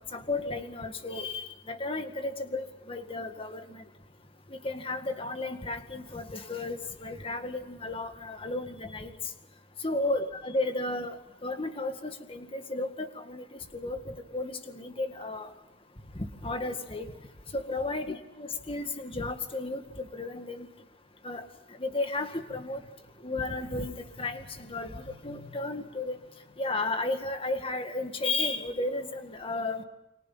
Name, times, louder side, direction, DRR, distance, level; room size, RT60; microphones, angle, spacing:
voice 1, 0.1-3.8 4.5-9.1 9.8-15.5 16.2-17.1 17.5-20.7 21.2-21.5 21.8-22.8 23.2-26.2 26.6-29.8, left 2 dB, 30° left, 7 dB, 1.9 m, -34 dB
29.5 x 24.0 x 5.7 m, 0.89 s
head